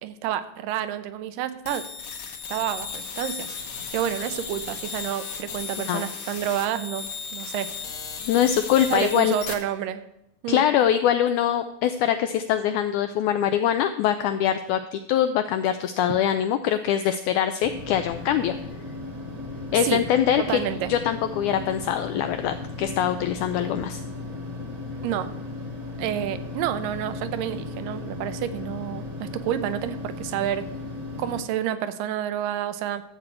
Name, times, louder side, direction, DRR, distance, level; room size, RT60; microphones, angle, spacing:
voice 1, 0.0-1.9 2.5-3.5 3.9-7.7 8.9-10.0 10.4-10.7 16.1-16.2 19.7-20.1 20.4-21.0 25.0-25.4 26.0-30.7 31.2-33.0, right 11 dB, 80° right, 12 dB, 2.2 m, -29 dB
sound 1, 1.7-9.5, left 5 dB, 65° left, 1.4 m, -35 dB
voice 2, 8.3-9.3 10.5-18.5 19.7-20.6 20.9-24.0, left 10 dB, 85° left, 9 dB, 1.7 m, -23 dB
sound 2, 17.6-31.4, left 2 dB, 40° right, 1.1 m, -36 dB
13.0 x 7.5 x 4.4 m, 0.84 s
omnidirectional pair, 4.0 m